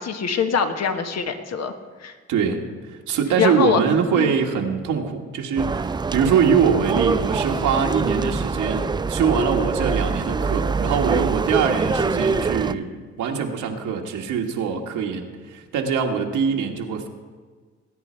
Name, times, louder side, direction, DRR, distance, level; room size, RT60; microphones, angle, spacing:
voice 1, 0.0-1.7 2.0-2.1 3.4-3.8 4.1-4.3, left 6 dB, 60° left, 7 dB, 1.3 m, -23 dB
voice 2, 2.3-12.9 13.2-17.1, right 6 dB, 80° right, 2 dB, 1.6 m, -23 dB
sound 1, 5.6-12.7, right 4 dB, 15° right, 0.3 m, -24 dB
19.5 x 9.7 x 4.4 m, 1.5 s
cardioid pair, 90°, 30 cm